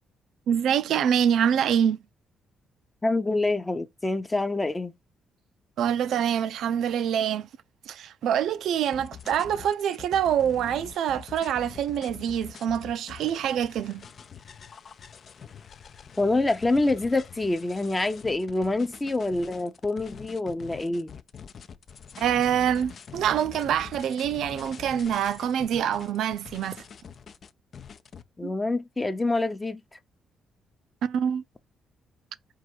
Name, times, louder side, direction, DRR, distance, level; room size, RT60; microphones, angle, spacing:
voice 1, 0.5-2.0 5.8-7.5 7.9-14.1 22.2-26.8 28.4-28.5 31.0-31.4, right 9 dB, 75° right, 0.5 m, -25 dB
voice 2, 3.0-4.9 16.2-21.1 28.4-29.8, left 2 dB, 15° left, 0.7 m, -26 dB
sound 1, 8.9-28.2, left 7 dB, 50° left, 0.6 m, -45 dB
4.7 x 2.5 x 4.5 m
cardioid pair, 90°, 0 cm